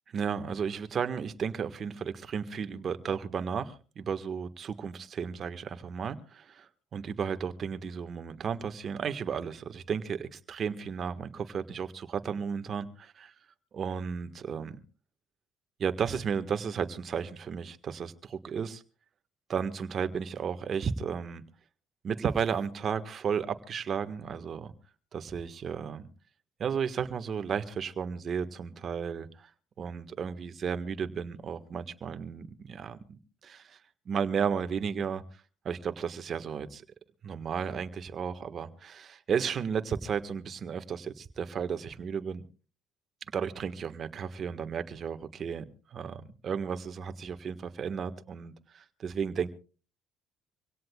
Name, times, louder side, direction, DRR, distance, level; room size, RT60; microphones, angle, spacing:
voice 1, 0.1-13.3 13.7-14.8 15.8-18.8 19.5-21.4 22.0-24.7 25.1-26.1 26.6-29.5 29.8-33.8 34.0-35.2 35.6-36.8 37.2-42.4 43.3-45.6 45.9-49.5, right 7 dB, 50° right, 1.5 m, -34 dB
25.5 x 17.0 x 2.4 m
supercardioid pair, 75°, 0 cm